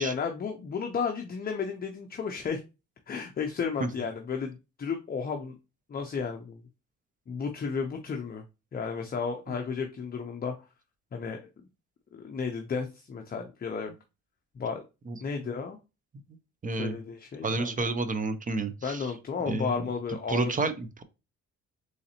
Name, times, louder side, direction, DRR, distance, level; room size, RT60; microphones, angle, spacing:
voice 1, 0.0-2.6 3.1-5.6 5.9-6.6 7.3-8.4 8.7-10.5 11.1-11.5 12.1-13.9 14.6-14.8 15.2-15.8 16.8-17.9 18.8-20.6, left 5 dB, 30° left, 4 dB, 0.6 m, -33 dB
voice 2, 16.6-16.9 17.4-19.1 19.5-19.8 20.3-21.0, right 3 dB, 25° right, 11 dB, 0.6 m, -30 dB
3.8 x 3.2 x 2.8 m, 0.28 s
cardioid pair, 90°, 30 cm